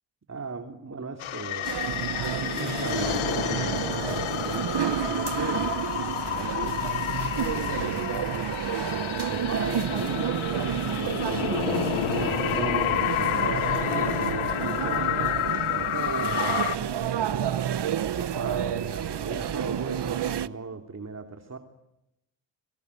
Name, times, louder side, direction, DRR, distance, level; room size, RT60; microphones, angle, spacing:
voice 1, 0.3-6.8 7.4-15.4 15.7-17.7 18.1-21.6, right 4 dB, 35° right, 5 dB, 3.0 m, -37 dB
sound 1, 1.2-16.8, left 13 dB, 90° left, 1.2 m, -30 dB
sound 2, 1.6-20.5, right 10 dB, 60° right, 1.1 m, -30 dB
30.0 x 23.5 x 8.3 m, 0.86 s
cardioid pair, 60°, 47 cm